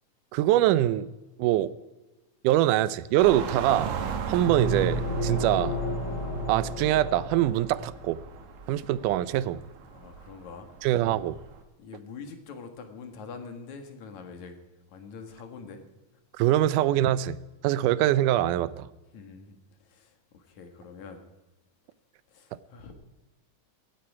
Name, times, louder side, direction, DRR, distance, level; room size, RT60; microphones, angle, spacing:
voice 1, 0.3-1.1 1.4-1.7 2.4-4.0 4.3-5.8 6.5-8.2 8.7-9.6 10.8-11.4 16.4-17.4 17.6-18.9, right 13 dB, 85° right, 2.2 m, -24 dB
sound 1, 3.2-11.6, right 6 dB, 70° right, 2.7 m, -38 dB
sound 2, 4.3-8.1, equal, 40° left, 2.8 m, -31 dB
voice 2, 9.9-10.7 11.8-14.6 14.9-15.8 19.1-19.6 19.9-21.2 22.3-22.9, left 5 dB, 70° left, 2.9 m, -44 dB
17.5 x 13.0 x 4.8 m
omnidirectional pair, 3.6 m